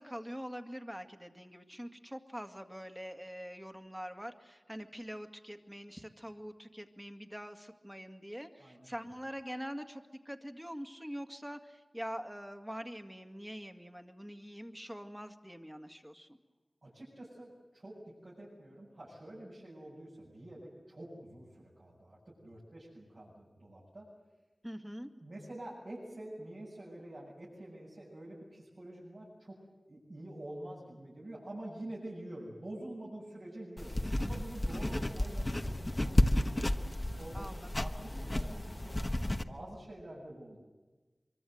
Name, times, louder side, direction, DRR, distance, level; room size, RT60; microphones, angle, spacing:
voice 1, 0.0-16.4 24.6-25.1 37.3-37.9, equal, 10° right, 6 dB, 2.1 m, -44 dB
voice 2, 8.6-9.0 16.8-17.9 18.2-24.1 25.2-29.6 29.9-36.1 36.4-36.6 37.1-38.9 39.4-40.6, right 1 dB, 65° right, -7 dB, 7.8 m, -47 dB
sound 1, 33.8-39.4, left 1 dB, 30° left, 1.2 m, -32 dB
24.5 x 24.0 x 8.0 m, 1.2 s
wide cardioid pair, 50°, 0 cm